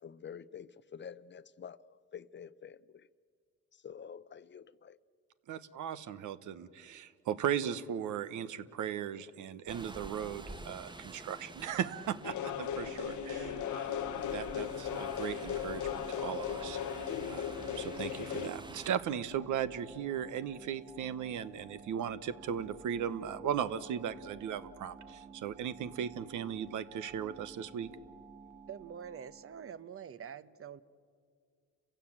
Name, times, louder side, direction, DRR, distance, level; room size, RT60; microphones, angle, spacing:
voice 1, 0.0-3.1 3.7-5.0, left 7 dB, 40° left, 0.6 m, -48 dB
voice 2, 5.5-27.9, right 9 dB, 80° right, 1.1 m, -37 dB
sound 1, 9.7-18.9, right 2 dB, 15° right, 1.1 m, -49 dB
sound 2, 11.0-29.9, right 4 dB, 30° right, 2.5 m, -54 dB
sound 3, 12.2-18.5, left 9 dB, 75° left, 1.1 m, -37 dB
voice 3, 28.7-30.8, right 8 dB, 45° right, 1.0 m, -45 dB
30.0 x 16.0 x 8.8 m
cardioid pair, 90°, 30 cm